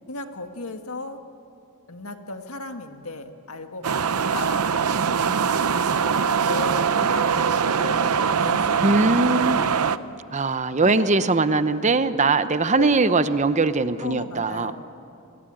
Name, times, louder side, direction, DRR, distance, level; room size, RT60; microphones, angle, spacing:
voice 1, 0.1-1.2 1.9-5.5 5.9-6.1 6.4-10.0 10.8-11.1 12.8-12.9 14.0-14.7, left 2 dB, 75° left, 6 dB, 1.8 m, -36 dB
sound 1, 3.8-10.0, right 6 dB, 85° right, 0.7 m, -22 dB
voice 2, 8.8-9.8 10.3-14.7, right 3 dB, 30° right, 12 dB, 0.8 m, -21 dB
28.5 x 20.5 x 8.9 m, 2.7 s
head